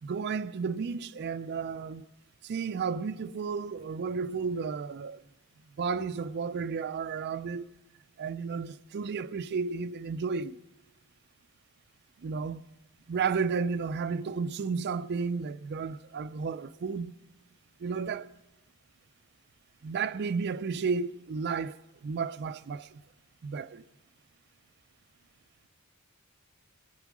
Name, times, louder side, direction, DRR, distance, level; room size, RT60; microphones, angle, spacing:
voice 1, 0.0-2.1 2.4-5.2 5.8-7.7 8.2-10.6 12.2-12.6 13.1-17.1 17.8-18.3 19.8-23.0 23.4-23.8, right 5 dB, 50° right, 0.4 m, -32 dB
16.5 x 8.2 x 6.1 m
head